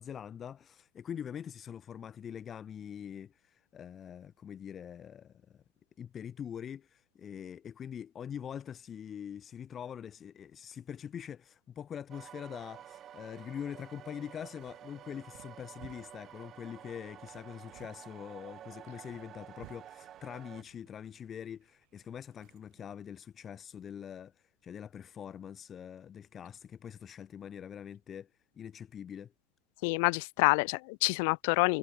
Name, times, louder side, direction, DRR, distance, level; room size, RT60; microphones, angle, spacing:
voice 1, 0.0-5.6 6.0-28.3 28.6-29.3, left 8 dB, 25° left, 1.1 m, -44 dB
sound 1, 12.1-20.6, right 10 dB, 25° right, 2.3 m, -51 dB
sound 2, 14.6-22.9, right 26 dB, 50° right, 5.3 m, -60 dB
voice 2, 29.8-31.8, left 33 dB, 60° left, 0.4 m, -27 dB
supercardioid pair, 165°, 0 cm